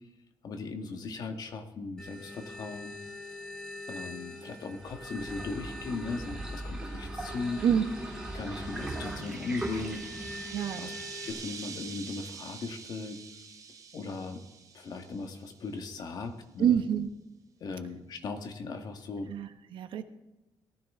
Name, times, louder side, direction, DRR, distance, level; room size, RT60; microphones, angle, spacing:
voice 1, 0.4-2.9 3.9-7.6 8.3-10.1 10.7-10.9 11.2-13.2 13.9-14.5 14.7-16.8 17.6-19.3, left 3 dB, 50° left, 6 dB, 1.6 m, -38 dB
sound 1, 2.0-11.3, left 2 dB, 5° left, 3.7 m, -45 dB
sound 2, 4.8-10.8, right 2 dB, 10° right, 3.0 m, -40 dB
sound 3, 5.9-15.7, right 6 dB, 40° right, 1.1 m, -47 dB
voice 2, 10.5-10.9 16.6-17.1 19.3-20.0, right 9 dB, 70° right, 9 dB, 1.1 m, -27 dB
18.5 x 14.0 x 3.7 m, 1.0 s
wide cardioid pair, 175°, 9 cm